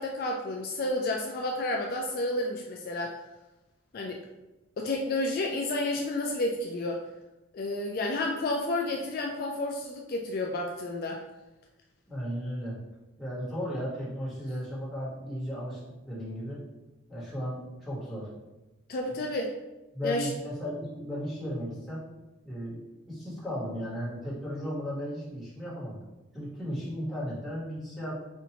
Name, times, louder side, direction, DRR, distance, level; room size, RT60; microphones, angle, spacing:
voice 1, 0.0-3.2 3.9-4.2 4.8-7.0 7.5-11.2 18.9-19.5 20.0-20.3, left 2 dB, 50° left, 0 dB, 0.3 m, -31 dB
voice 2, 12.1-12.8 13.2-15.8 16.1-16.6 17.1-18.3 19.9-22.0 22.4-22.8 23.1-26.0 26.3-28.1, equal, ahead, -10 dB, 1.3 m, -35 dB
4.3 x 2.6 x 2.8 m, 1.0 s
head